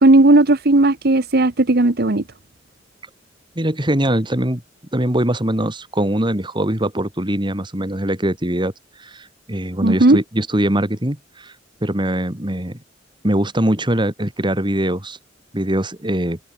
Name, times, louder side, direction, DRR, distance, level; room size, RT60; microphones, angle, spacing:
voice 1, 0.0-2.2 9.8-10.2, right 2 dB, 60° right, 1.2 m, -14 dB
voice 2, 3.5-4.6 4.9-8.7 9.0-11.5 11.8-12.8 13.2-15.2 15.5-16.4, right 1 dB, 25° right, 3.2 m, -22 dB
head